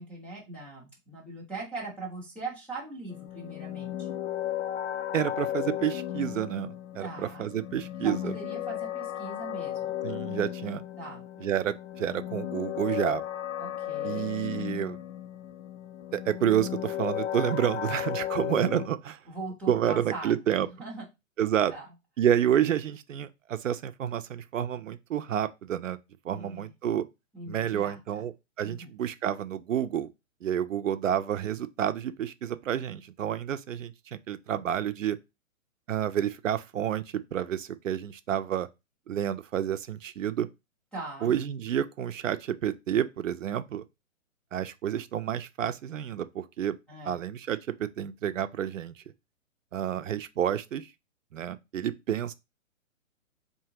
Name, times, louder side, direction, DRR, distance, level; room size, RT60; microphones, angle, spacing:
voice 1, 0.0-4.1 7.0-7.5 8.0-9.9 11.0-11.2 13.6-14.3 19.3-20.3 20.6-21.0 21.7-21.9 26.3-26.7 27.3-28.2 28.6-28.9 40.9-41.4 46.9-47.2, right 2 dB, 5° left, 0.5 m, -40 dB
sound 1, 3.1-18.9, left 12 dB, 60° left, 0.5 m, -35 dB
voice 2, 5.1-8.3 10.0-10.8 11.4-13.2 14.0-15.0 16.1-19.2 19.7-20.7 21.4-21.7 22.2-26.0 26.2-27.1 27.5-28.3 28.6-30.1 30.4-35.2 35.9-38.7 39.1-40.5 41.2-43.8 44.5-46.8 47.0-48.9 49.7-50.9 51.3-52.3, right 10 dB, 65° right, 0.6 m, -29 dB
4.7 x 2.8 x 2.8 m
hypercardioid pair, 130°, 41 cm